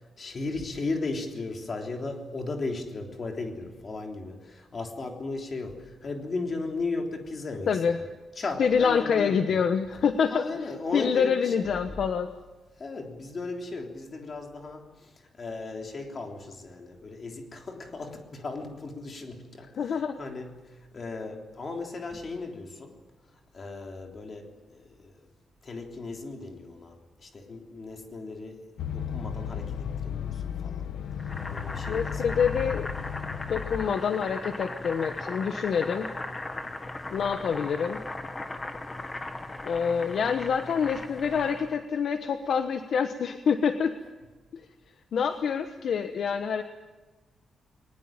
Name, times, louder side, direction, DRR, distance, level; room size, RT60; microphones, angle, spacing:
voice 1, 0.0-7.8 8.4-9.6 10.3-12.0 12.8-23.0 23.5-25.2 25.6-30.9 31.5-32.3, left 3 dB, 35° left, 3 dB, 3.5 m, -36 dB
voice 2, 7.7-8.0 8.6-10.4 10.9-12.3 19.8-20.2 31.9-32.9 33.5-36.1 37.1-38.0 39.6-43.9 44.5-44.6 45.1-46.6, left 6 dB, 55° left, 8 dB, 1.1 m, -26 dB
sound 1, 28.8-33.9, left 8 dB, 85° left, 1.1 m, -34 dB
Boiling, 31.2-41.8, left 2 dB, 20° left, 1.6 m, -38 dB
22.0 x 20.5 x 8.9 m, 1.2 s
wide cardioid pair, 170°, 0 cm